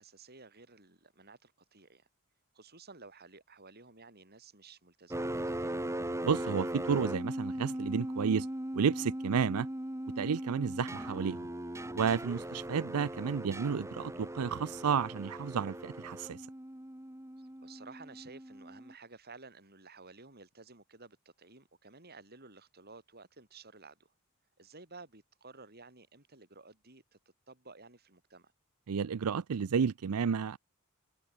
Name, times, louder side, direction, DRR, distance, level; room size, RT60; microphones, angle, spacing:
voice 1, 0.0-2.1 2.5-5.8 12.3-12.5 17.4-24.1 24.6-27.2 27.5-28.5, right 3 dB, 45° right, 7.7 m, -54 dB
sound 1, 5.1-18.9, right 1 dB, 15° right, 1.8 m, -39 dB
voice 2, 6.2-8.5 8.7-9.7 10.2-11.5 11.9-16.5 28.9-30.6, right 6 dB, 90° right, 0.5 m, -31 dB
head